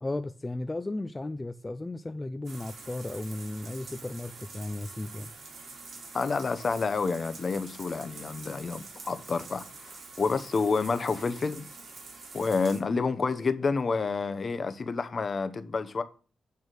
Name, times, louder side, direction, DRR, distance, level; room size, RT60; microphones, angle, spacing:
voice 1, 0.0-5.3, left 2 dB, 20° left, 0.4 m, -35 dB
sound 1, 2.4-12.8, right 3 dB, 65° right, 2.8 m, -46 dB
voice 2, 6.1-9.6 10.2-11.7 12.3-16.0, left 4 dB, 45° left, 0.9 m, -29 dB
9.0 x 3.6 x 6.1 m
cardioid pair, 90°, 0 cm